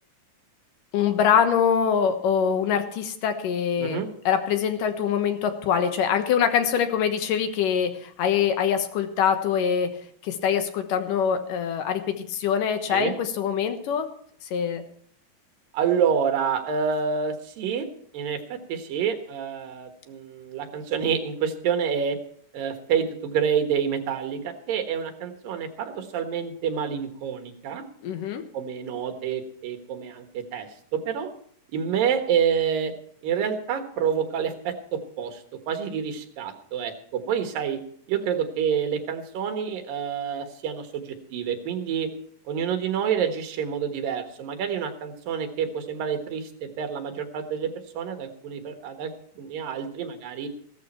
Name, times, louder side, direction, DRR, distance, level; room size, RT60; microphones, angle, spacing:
voice 1, 0.9-9.9 10.2-14.1 14.5-14.8 28.0-28.4, left 8 dB, 75° left, 7 dB, 2.8 m, -24 dB
voice 2, 15.7-17.9 18.1-22.2 22.5-27.8 28.5-31.3 31.7-32.9 33.2-37.8 38.1-42.1 42.5-49.1 49.4-50.5, right 7 dB, 80° right, 6 dB, 3.2 m, -28 dB
15.5 x 13.0 x 4.4 m, 0.62 s
omnidirectional pair, 3.9 m